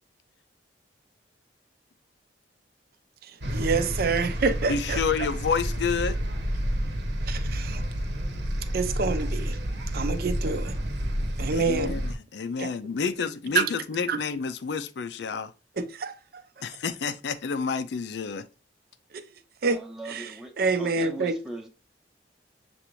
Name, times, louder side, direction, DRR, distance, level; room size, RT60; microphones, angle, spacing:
sound 1, 3.4-12.1, equal, 70° right, 0.9 m, -30 dB
voice 1, 3.5-5.0 7.3-7.8 8.7-9.6 9.9-10.7 11.4-12.0 12.6-12.7 13.5-13.7 14.1-14.2 15.8-16.2 19.6-19.8 20.1-20.3 20.6-21.4, right 4 dB, 55° right, 0.5 m, -27 dB
voice 2, 4.7-6.2 11.5-15.5 16.6-18.4, left 5 dB, 65° left, 0.4 m, -29 dB
voice 3, 19.7-21.7, right 2 dB, ahead, 0.7 m, -40 dB
6.8 x 2.5 x 3.0 m
head